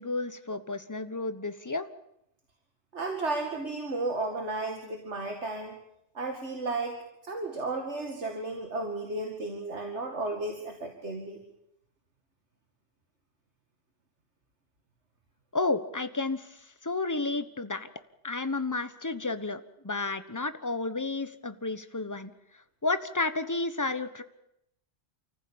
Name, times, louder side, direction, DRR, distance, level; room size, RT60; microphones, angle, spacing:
voice 1, 0.0-1.9 15.5-17.9 18.2-24.2, left 3 dB, 15° left, 11 dB, 1.1 m, -32 dB
voice 2, 2.9-5.8 6.1-7.0 7.2-11.4, right 2 dB, 70° right, 3 dB, 2.5 m, -33 dB
28.5 x 15.0 x 8.8 m, 0.81 s
omnidirectional pair, 1.2 m